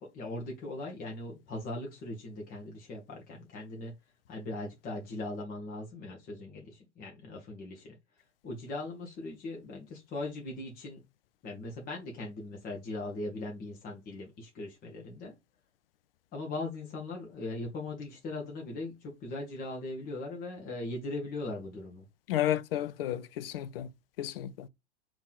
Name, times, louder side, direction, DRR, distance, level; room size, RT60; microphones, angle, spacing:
voice 1, 0.0-4.0 4.3-8.0 8.4-11.0 11.4-15.3 16.3-22.0, left 2 dB, 25° left, 1.2 m, -39 dB
voice 2, 22.3-23.9 24.2-24.7, left 11 dB, 55° left, 0.5 m, -32 dB
3.5 x 3.0 x 4.2 m
figure-of-eight pair, 95°, 36 cm